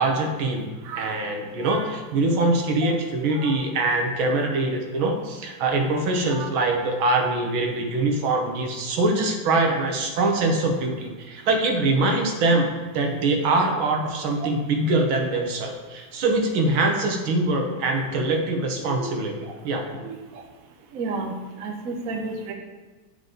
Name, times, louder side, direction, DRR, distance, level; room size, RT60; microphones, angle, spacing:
voice 1, 0.0-0.7 1.0-19.4 19.6-19.8, right 2 dB, 75° right, 3 dB, 1.8 m, -23 dB
voice 2, 20.0-20.4 20.9-21.3 21.6-22.5, right 4 dB, 55° right, 2 dB, 1.1 m, -32 dB
9.7 x 5.3 x 3.9 m, 1.3 s
omnidirectional pair, 2.2 m